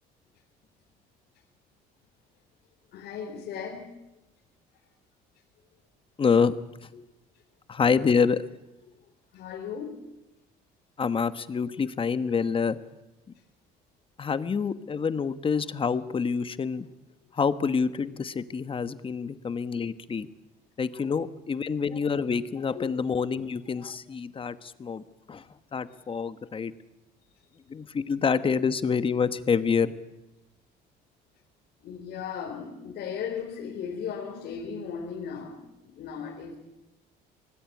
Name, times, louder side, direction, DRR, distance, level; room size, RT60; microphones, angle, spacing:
voice 1, 2.9-3.9 6.9-7.0 9.3-10.0 22.7-22.8 25.9-26.0 31.8-35.6 35.8-36.6, left 7 dB, 70° left, -2 dB, 3.8 m, -36 dB
voice 2, 6.2-6.5 7.7-8.4 11.0-12.8 14.2-16.9 17.3-20.3 20.8-25.4 25.7-26.7 27.7-29.9, left 5 dB, 30° left, 12 dB, 1.2 m, -27 dB
25.0 x 19.0 x 8.5 m, 0.97 s
cardioid pair, 110°, 17 cm